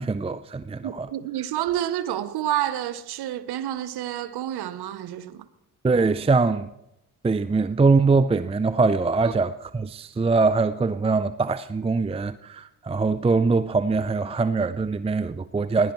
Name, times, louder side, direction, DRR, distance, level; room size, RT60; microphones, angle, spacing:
voice 1, 0.0-1.1 5.8-6.7 7.2-15.9, right 4 dB, 15° right, 0.6 m, -22 dB
voice 2, 0.8-5.5, right 12 dB, 65° right, 1.0 m, -29 dB
20.5 x 15.5 x 3.2 m
hypercardioid pair, 45°, 42 cm